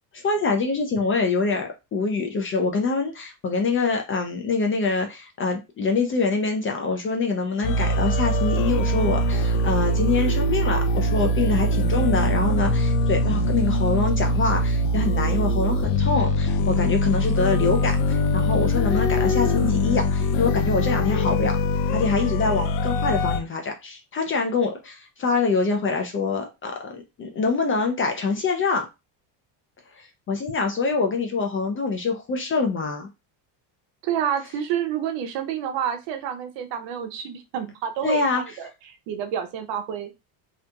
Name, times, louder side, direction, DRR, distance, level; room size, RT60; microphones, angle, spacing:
voice 1, 0.1-21.6 21.9-28.9 30.0-33.1 38.0-38.4, left 4 dB, 30° left, 0.4 m, -25 dB
sound 1, 7.6-23.4, left 1 dB, 75° left, 0.6 m, -22 dB
voice 2, 34.0-40.1, right 9 dB, 65° right, 0.7 m, -29 dB
2.7 x 2.4 x 2.2 m
cardioid pair, 115°, 49 cm